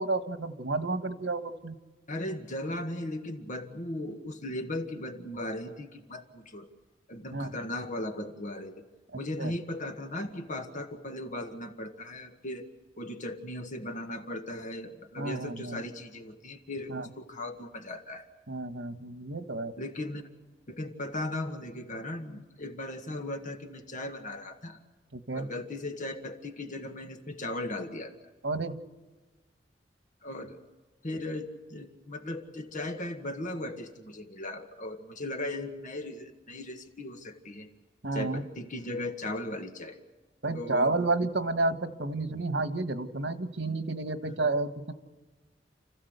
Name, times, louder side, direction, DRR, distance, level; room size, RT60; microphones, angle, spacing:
voice 1, 0.0-1.8 7.3-7.5 9.1-9.5 15.2-15.8 16.9-17.1 18.5-19.7 25.1-25.5 28.4-28.8 38.0-38.4 40.4-44.9, right 2 dB, 85° right, 9 dB, 1.5 m, -31 dB
voice 2, 2.1-6.7 7.1-8.9 9.1-12.7 13.0-18.3 19.8-20.2 20.7-24.8 25.3-28.1 30.2-30.6 31.0-37.7 38.1-40.0 40.5-40.9 44.3-44.4, left 1 dB, 45° left, 6 dB, 1.8 m, -37 dB
29.5 x 15.0 x 8.1 m, 1.2 s
head